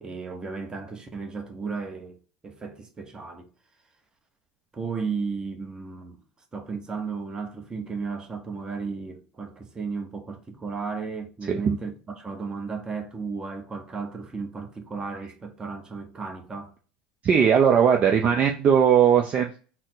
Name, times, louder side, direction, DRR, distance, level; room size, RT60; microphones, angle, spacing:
voice 1, 0.0-2.2 2.4-3.5 4.7-6.2 6.5-16.7, right 4 dB, 20° right, 0.9 m, -34 dB
voice 2, 17.2-19.6, right 7 dB, 35° right, 0.5 m, -19 dB
4.1 x 2.1 x 3.9 m
supercardioid pair, 105°, 4 cm